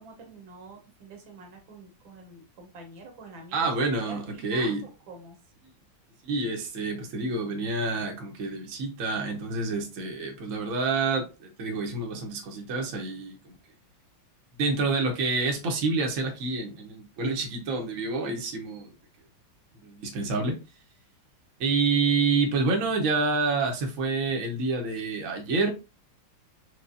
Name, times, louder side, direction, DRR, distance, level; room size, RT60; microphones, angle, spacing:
voice 1, 0.0-3.7 4.0-5.4, right 3 dB, 80° right, 1.8 m, -46 dB
voice 2, 3.5-4.8 6.2-13.6 14.6-18.9 19.8-20.6 21.6-25.7, right 3 dB, 55° right, 1.0 m, -28 dB
4.6 x 2.3 x 2.6 m
omnidirectional pair, 2.1 m